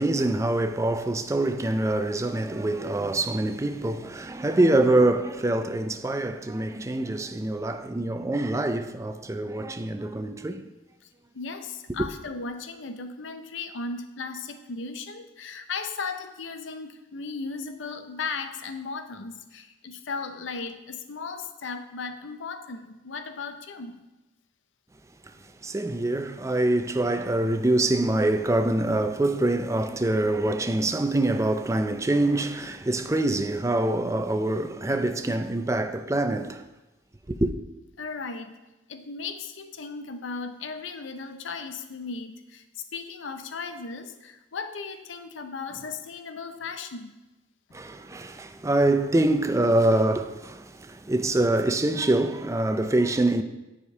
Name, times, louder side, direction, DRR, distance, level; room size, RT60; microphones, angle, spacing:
voice 1, 0.0-10.7 25.6-36.6 37.3-37.5 47.7-53.4, right 2 dB, 15° right, 0.4 m, -25 dB
voice 2, 11.3-24.0 38.0-38.6 38.9-47.1, left 4 dB, 90° left, 0.6 m, -36 dB
9.8 x 5.0 x 4.7 m
head